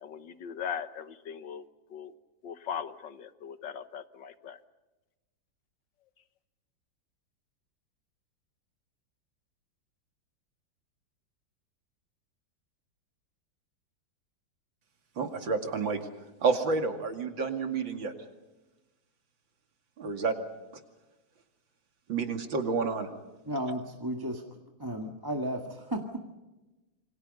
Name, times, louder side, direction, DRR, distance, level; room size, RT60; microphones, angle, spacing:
voice 1, 0.0-1.6 1.9-2.1 2.4-4.6, left 7 dB, 75° left, 11 dB, 1.9 m, -39 dB
voice 2, 15.2-16.0 16.4-18.1 20.0-20.3 22.1-23.1, right 4 dB, 85° right, 5 dB, 3.1 m, -29 dB
voice 3, 23.4-24.4 24.8-26.3, right 1 dB, 10° right, 2 dB, 1.7 m, -34 dB
28.0 x 25.0 x 5.4 m, 1.1 s
omnidirectional pair, 2.0 m